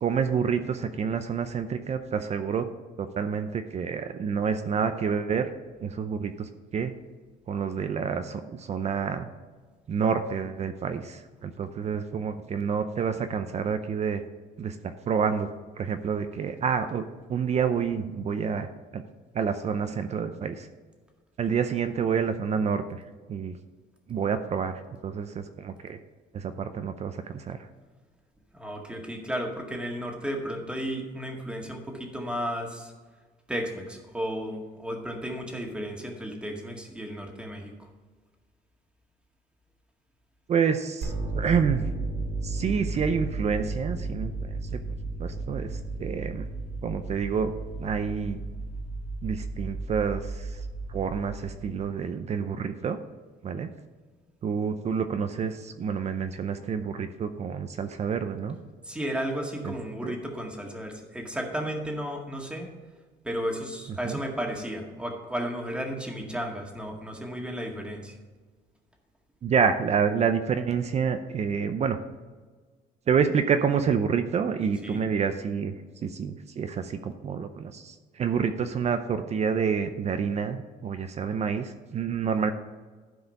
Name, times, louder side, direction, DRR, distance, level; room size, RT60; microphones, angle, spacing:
voice 1, 0.0-2.7 3.0-5.5 5.8-6.9 7.5-9.3 9.9-14.2 14.6-15.5 15.8-19.0 19.3-20.7 21.4-22.8 23.3-23.5 24.1-26.0 26.3-27.6 40.5-41.9 42.4-44.3 44.7-44.8 45.2-46.5 46.8-48.4 49.2-50.6 50.9-53.0 53.4-53.7 54.4-58.6 59.6-59.7 60.0-60.1 64.0-64.2 69.4-72.0 73.1-75.7 76.0-82.5, right 6 dB, 40° right, 9 dB, 0.6 m, -28 dB
voice 2, 28.5-32.9 33.5-37.9 58.8-62.7 63.2-68.1 74.8-75.0, equal, 5° right, 1 dB, 1.9 m, -33 dB
sound 1, 41.0-52.0, right 3 dB, 60° right, 2.8 m, -34 dB
12.0 x 4.9 x 5.3 m, 1.4 s
cardioid pair, 110°, 17 cm